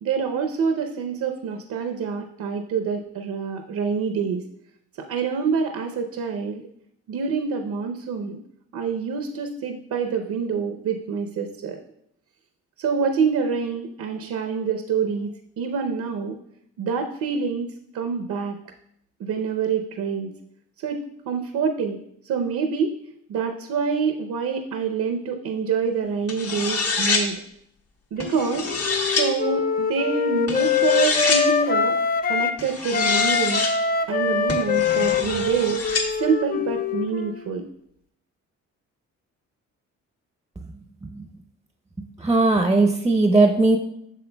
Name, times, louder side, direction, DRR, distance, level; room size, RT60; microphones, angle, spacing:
voice 1, 0.0-4.4 5.0-6.6 7.1-8.4 8.7-11.8 12.8-15.3 15.6-16.4 16.8-17.7 17.9-18.5 19.2-20.3 20.8-21.0 21.3-22.0 22.3-22.9 23.3-27.3 28.1-28.7 29.1-31.9 32.3-33.6 34.1-35.8 36.2-37.6, right 5 dB, 70° right, 5 dB, 0.7 m, -26 dB
sound 1, 26.3-27.2 28.2-29.3 30.5-31.4 32.6-33.7 34.5-36.1, left 4 dB, 55° left, 1.3 m, -26 dB
Wind instrument woodwind instrument, 28.2-32.6 32.9-37.4, left 6 dB, 30° left, 0.4 m, -24 dB
voice 2, 42.2-43.8, right 3 dB, 10° right, 5 dB, 0.6 m, -18 dB
8.3 x 6.3 x 2.2 m, 0.73 s
cardioid pair, 90°, 30 cm